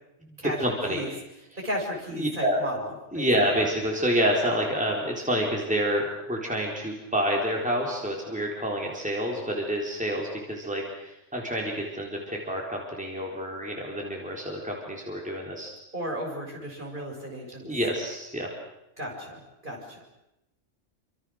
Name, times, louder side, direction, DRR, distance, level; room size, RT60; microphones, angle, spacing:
voice 1, 0.6-1.1 2.1-2.6 3.1-15.7 17.6-18.5, equal, 5° right, -2 dB, 4.0 m, -28 dB
voice 2, 1.6-3.3 15.9-17.6 19.0-20.1, equal, 40° right, -1 dB, 7.1 m, -34 dB
28.5 x 26.0 x 6.5 m, 0.86 s
omnidirectional pair, 1.3 m